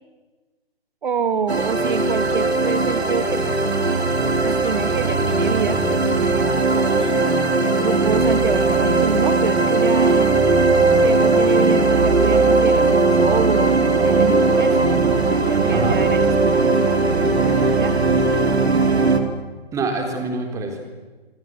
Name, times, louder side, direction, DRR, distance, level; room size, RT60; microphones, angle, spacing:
voice 1, 1.0-3.4 4.4-7.1 7.8-10.3 11.0-14.8 15.3-18.0, right 6 dB, 50° right, 11 dB, 1.7 m, -26 dB
sound 1, 1.5-19.2, right 3 dB, 75° right, 4.4 m, -18 dB
voice 2, 19.7-20.8, right 3 dB, 10° right, 3 dB, 3.8 m, -25 dB
28.0 x 26.0 x 7.9 m, 1.3 s
figure-of-eight pair, 145°, 32 cm